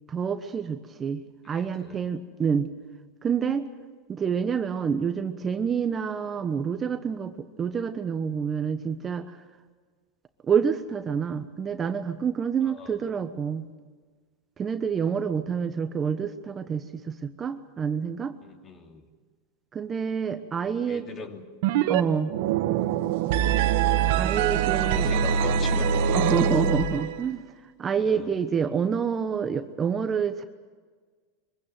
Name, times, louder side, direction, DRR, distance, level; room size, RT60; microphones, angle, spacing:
voice 1, 0.1-2.7 3.2-3.7 4.1-9.4 10.5-13.6 14.6-18.3 19.7-21.1 21.9-22.3 24.2-25.1 26.1-27.4 27.8-30.4, right 6 dB, 25° right, 8 dB, 1.1 m, -28 dB
voice 2, 1.5-2.0 12.6-13.0 15.3-15.4 18.4-19.0 20.6-21.9 24.4-26.2 27.9-28.3, left 3 dB, 30° left, 5 dB, 2.7 m, -41 dB
sound 1, 21.6-22.0 22.3-27.2, right 7 dB, 70° right, 1.3 m, -24 dB
23.5 x 16.0 x 9.2 m, 1.5 s
supercardioid pair, 130°, 0 cm